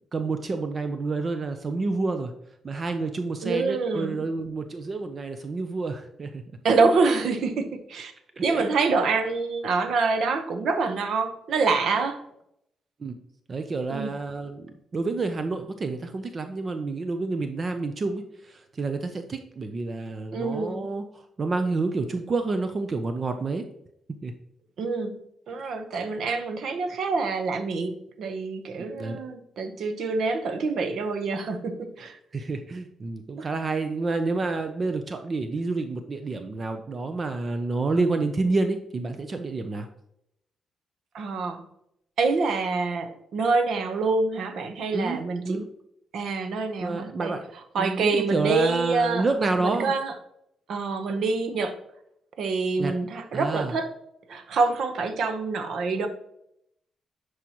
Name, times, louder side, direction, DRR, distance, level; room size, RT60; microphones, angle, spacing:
voice 1, 0.1-2.3 2.6-6.4 8.4-8.6 13.0-13.2 13.5-23.7 24.2-24.3 29.0-29.2 32.3-39.9 44.9-45.2 45.4-45.7 46.8-47.5 47.8-49.9 52.8-53.0 53.3-53.7, right 3 dB, 30° right, 7 dB, 0.5 m, -29 dB
voice 2, 3.4-4.2 6.6-8.1 8.4-12.2 13.9-14.1 20.3-20.9 24.8-25.2 25.5-32.2 33.4-33.5 41.1-41.6 42.2-45.6 46.1-47.3 47.7-49.2 49.6-50.1 50.7-51.8 52.4-53.9 54.3-56.1, right 4 dB, 65° right, 7 dB, 0.9 m, -26 dB
10.0 x 4.8 x 3.0 m, 0.77 s
cardioid pair, 150°, 0 cm